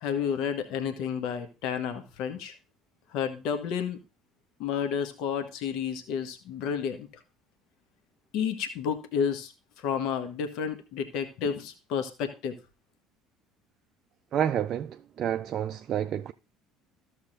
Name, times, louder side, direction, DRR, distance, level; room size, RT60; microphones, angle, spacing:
voice 1, 0.0-2.5 3.1-4.0 4.6-7.1 8.3-9.5 9.8-12.6, left 7 dB, 55° left, 1.1 m, -31 dB
voice 2, 14.3-16.3, right 9 dB, 45° right, 0.4 m, -29 dB
14.5 x 6.2 x 2.5 m
figure-of-eight pair, 60°, 0 cm